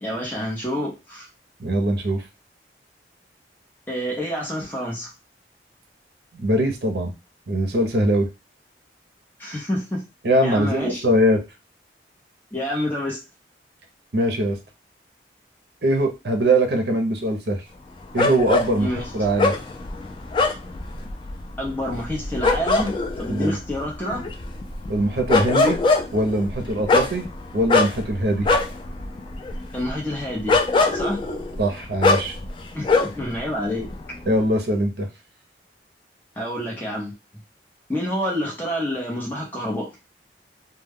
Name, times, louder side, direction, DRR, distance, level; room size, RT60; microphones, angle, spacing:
voice 1, 0.0-1.3 3.9-5.1 9.4-10.0 10.4-11.0 12.5-13.2 18.8-19.0 21.6-24.2 29.7-30.6 30.9-31.2 32.7-33.9 36.4-37.1 37.9-39.9, equal, 10° left, -2 dB, 0.7 m, -28 dB
voice 2, 1.6-2.2 6.3-7.1 7.5-8.3 10.2-11.4 14.1-14.6 15.8-17.6 18.1-18.9 19.1-19.5 23.3-23.6 24.9-25.8 26.1-27.2 27.5-28.5 31.6-32.3 34.3-35.1, right 1 dB, 65° right, 4 dB, 0.6 m, -21 dB
sound 1, 18.2-33.4 33.6-34.4, left 3 dB, 30° left, 0.3 m, -23 dB
2.2 x 2.2 x 3.4 m, 0.26 s
head